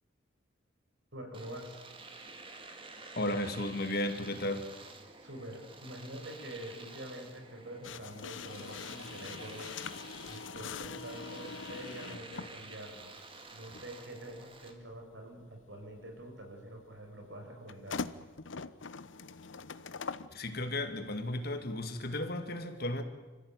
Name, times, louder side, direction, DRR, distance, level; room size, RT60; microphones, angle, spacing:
voice 1, 1.1-1.8 5.2-9.7 10.3-13.1 13.5-18.0, right 1 dB, 70° right, 6.0 m, -46 dB
Domestic sounds home sounds, 1.3-14.7, right 3 dB, 30° right, 2.2 m, -51 dB
voice 2, 3.2-4.7 20.3-23.0, left 1 dB, 55° left, 2.1 m, -34 dB
sound 1, 7.8-12.6 13.7-13.8 17.7-20.3, left 5 dB, 85° left, 0.9 m, -42 dB
25.5 x 15.0 x 9.1 m
head